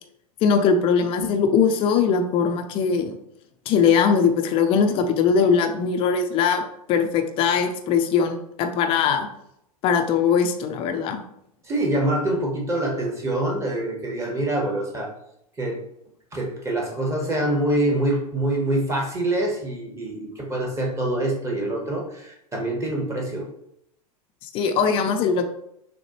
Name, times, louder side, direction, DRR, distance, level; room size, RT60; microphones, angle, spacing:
voice 1, 0.4-3.2 3.7-6.6 6.9-9.3 9.8-11.2 24.5-25.4, left 6 dB, 30° left, 5 dB, 0.5 m, -20 dB
voice 2, 11.6-15.1 15.6-15.8 16.3-23.5, right 1 dB, 15° right, 0 dB, 1.1 m, -25 dB
6.4 x 2.2 x 3.0 m, 0.76 s
figure-of-eight pair, 90°, 20 cm